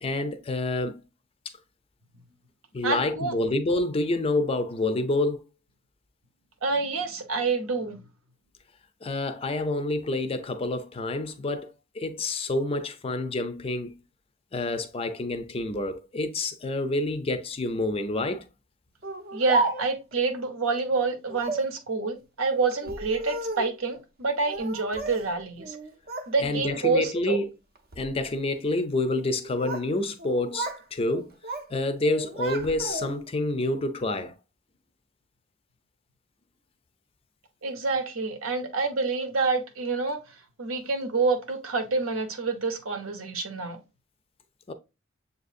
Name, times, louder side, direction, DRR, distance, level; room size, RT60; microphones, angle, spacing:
voice 1, 0.0-1.0 2.7-5.4 9.0-14.0 14.5-18.5 26.4-27.5 28.0-31.3 31.7-34.3 44.7-44.8, left 2 dB, 30° left, 0.4 m, -28 dB
voice 2, 2.8-3.4 6.6-8.0 19.3-25.8 26.3-27.4 37.6-43.8, right 4 dB, 80° right, 0.8 m, -27 dB
Speech, 19.0-20.1 21.3-21.7 22.7-23.8 24.5-25.3 25.6-26.3 26.7-27.1 27.8-28.1 29.2-29.9 30.2-30.8 31.1-31.7 32.0-33.3, right 3 dB, 50° right, 0.6 m, -33 dB
6.8 x 2.6 x 2.4 m
head